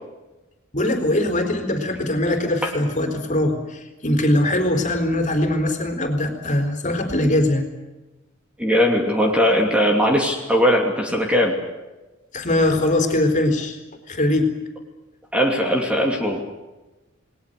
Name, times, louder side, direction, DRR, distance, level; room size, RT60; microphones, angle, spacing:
voice 1, 0.7-7.6 12.3-13.8 14.1-14.5, left 1 dB, 35° left, 5 dB, 4.0 m, -21 dB
voice 2, 8.6-11.6 15.3-16.4, equal, 5° right, 2 dB, 2.6 m, -19 dB
29.0 x 20.5 x 6.8 m, 1.1 s
head